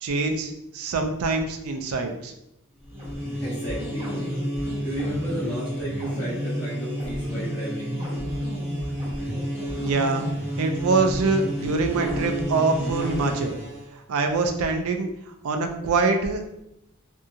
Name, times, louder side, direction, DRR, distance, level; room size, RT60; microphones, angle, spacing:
voice 1, 0.0-2.3 9.8-10.2 10.6-13.6 14.1-15.1 15.4-16.4, right 3 dB, 75° right, 5 dB, 0.4 m, -24 dB
sound 1, 2.8-13.9, equal, 25° right, 0.9 m, -30 dB
voice 2, 3.4-4.1 4.8-8.0, right 1 dB, 35° left, -11 dB, 1.2 m, -33 dB
2.7 x 2.6 x 2.3 m, 0.82 s
head